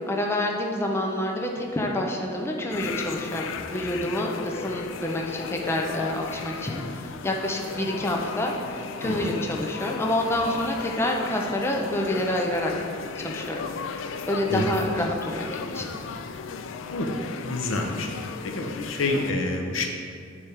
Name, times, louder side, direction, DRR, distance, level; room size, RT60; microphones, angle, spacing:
voice 1, 0.0-8.5 9.0-12.7 13.2-13.6 13.9-15.9 17.9-18.0, left 1 dB, 15° left, 0 dB, 0.5 m, -28 dB
sound 1, 2.7-19.3, left 6 dB, 70° left, 0.3 m, -36 dB
voice 2, 9.0-9.4 14.5-14.8 16.9-17.1 17.4-18.1 18.4-19.9, left 2 dB, 90° left, 2 dB, 0.8 m, -28 dB
7.3 x 3.3 x 5.0 m, 2.2 s
head